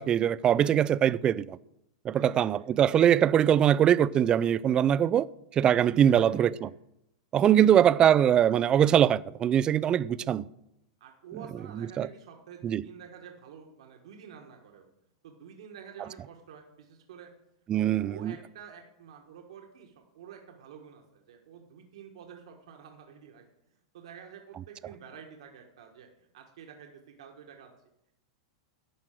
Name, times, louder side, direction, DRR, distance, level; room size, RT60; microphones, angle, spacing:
voice 1, 0.0-1.6 2.0-5.3 5.5-6.7 7.3-10.5 11.8-12.1 12.6-12.9 17.7-18.4, right 10 dB, 30° right, 0.4 m, -22 dB
voice 2, 2.1-2.7 6.1-6.7 7.6-7.9 11.0-14.9 15.2-17.3 17.7-23.4 23.9-27.7, right 7 dB, 75° right, 1.5 m, -49 dB
11.5 x 4.6 x 7.6 m
hypercardioid pair, 120°, 3 cm